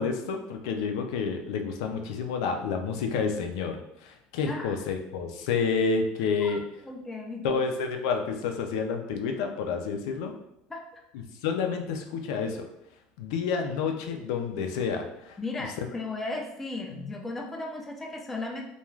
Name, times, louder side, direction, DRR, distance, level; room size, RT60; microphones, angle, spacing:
voice 1, 0.0-6.6 7.4-10.4 11.4-12.6 13.2-15.4 15.8-15.9 16.9-17.1, left 5 dB, 85° left, 4 dB, 0.4 m, -29 dB
voice 2, 4.5-4.8 6.4-6.6 6.8-7.4 10.7-11.0 15.4-18.6, left 2 dB, 10° left, 0 dB, 0.3 m, -36 dB
2.3 x 2.3 x 3.1 m, 0.80 s
cardioid pair, 160°, 3 cm